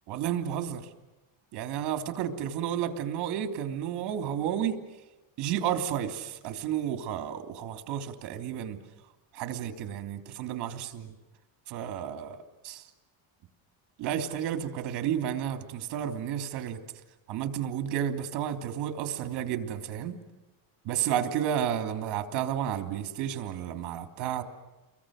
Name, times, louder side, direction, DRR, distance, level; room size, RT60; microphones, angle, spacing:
voice 1, 0.1-0.8 1.5-4.8 5.4-8.8 9.3-11.1 11.7-12.4 12.6-12.8 14.0-16.8 17.3-20.1 20.8-24.4, right 9 dB, 55° right, 7 dB, 3.1 m, -31 dB
30.0 x 23.0 x 6.5 m, 1.1 s
cardioid pair, 175°, 49 cm